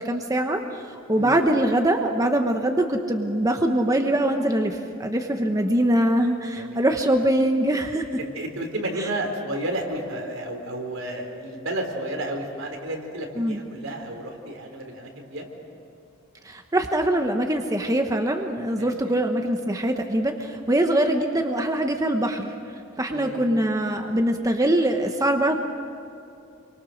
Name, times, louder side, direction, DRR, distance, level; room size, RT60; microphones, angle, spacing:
voice 1, 0.0-8.1 9.0-9.1 13.4-13.6 16.4-25.6, right 1 dB, 15° right, 4 dB, 1.1 m, -23 dB
voice 2, 8.3-15.5 18.7-19.1 23.1-23.4, right 1 dB, 75° right, 2 dB, 3.9 m, -32 dB
28.5 x 24.0 x 6.5 m, 2.7 s
head